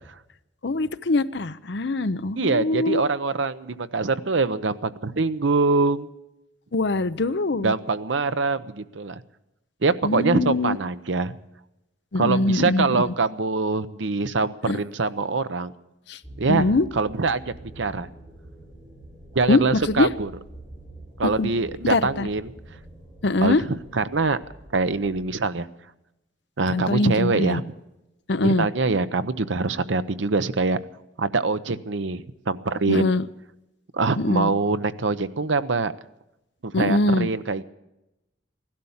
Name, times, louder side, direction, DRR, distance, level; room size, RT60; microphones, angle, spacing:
voice 1, 0.6-3.0 6.7-7.7 10.0-10.8 12.1-13.1 14.7-14.8 16.1-16.2 16.5-16.9 19.5-19.6 19.9-20.1 21.2-21.5 21.8-22.3 23.2-23.6 26.7-27.6 28.3-28.7 32.9-33.3 34.2-34.5 36.7-37.3, left 2 dB, 65° left, 13 dB, 0.7 m, -23 dB
voice 2, 2.4-6.1 7.6-9.2 9.8-11.3 12.1-15.7 16.4-17.4 17.8-18.1 19.3-20.3 21.2-22.5 23.4-24.4 24.7-25.7 26.6-27.6 28.4-30.8 31.2-33.1 33.9-35.9 36.6-37.6, right 3 dB, 80° right, 13 dB, 0.8 m, -24 dB
sound 1, 16.2-25.1, right 1 dB, 15° right, 5.1 m, -45 dB
16.5 x 12.0 x 7.2 m, 0.91 s
head